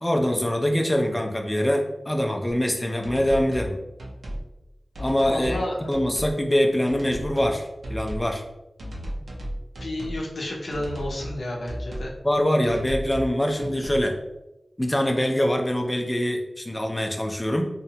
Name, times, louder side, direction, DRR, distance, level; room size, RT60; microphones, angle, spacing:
voice 1, 0.0-3.8 5.0-8.4 12.2-14.1 14.8-17.7, equal, 15° left, 3 dB, 0.3 m, -24 dB
sound 1, 3.0-3.7 4.0-4.4 4.9-5.6 5.9-6.3 6.9-7.5 7.8-8.3 8.8-10.2 10.7-11.4 11.7-12.1 12.6-13.3 13.6-14.0, equal, 90° right, 0.5 m, -34 dB
voice 2, 5.3-5.9 9.8-12.1, left 1 dB, 85° left, -2 dB, 0.5 m, -31 dB
2.8 x 2.1 x 2.7 m, 0.94 s
wide cardioid pair, 75°, 0 cm